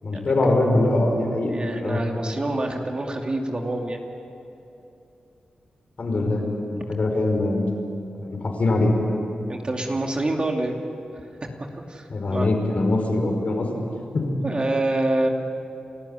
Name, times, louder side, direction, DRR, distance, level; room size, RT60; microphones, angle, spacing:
voice 1, 0.0-1.5 1.8-2.0 6.0-7.7 8.2-8.9 12.1-13.9 14.1-14.4, left 2 dB, 55° left, 2 dB, 5.3 m, -23 dB
voice 2, 1.5-4.0 9.5-10.7 11.2-12.5 14.4-15.3, right 2 dB, 35° right, 2 dB, 2.6 m, -27 dB
29.5 x 14.0 x 10.0 m, 2.9 s
cardioid pair, 75°, 3 cm